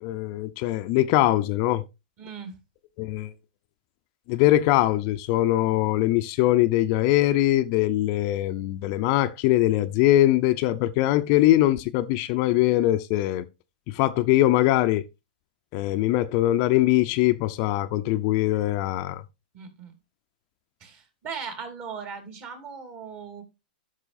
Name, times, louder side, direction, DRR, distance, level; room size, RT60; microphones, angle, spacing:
voice 1, 0.0-1.8 3.0-3.3 4.3-13.5 13.9-15.0 15.7-19.2, left 15 dB, 45° left, 0.5 m, -22 dB
voice 2, 2.2-2.5 19.5-19.9 20.8-23.4, right 6 dB, 40° right, 2.8 m, -38 dB
12.5 x 6.2 x 2.6 m
hypercardioid pair, 130°, 5 cm